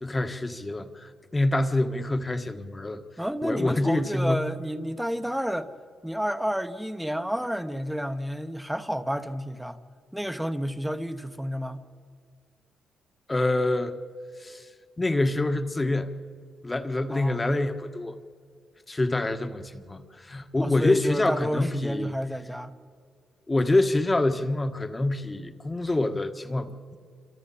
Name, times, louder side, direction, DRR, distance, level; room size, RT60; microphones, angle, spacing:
voice 1, 0.0-3.0 3.4-4.4 13.3-14.0 14.4-14.7 15.0-16.1 16.6-18.2 18.9-22.1 23.5-27.0, left 2 dB, 20° left, 1.4 m, -26 dB
voice 2, 3.2-5.7 6.0-9.8 10.1-11.9 17.1-17.6 20.6-22.8, equal, 5° right, 1.1 m, -30 dB
27.0 x 27.0 x 4.2 m
cardioid pair, 105°, 0 cm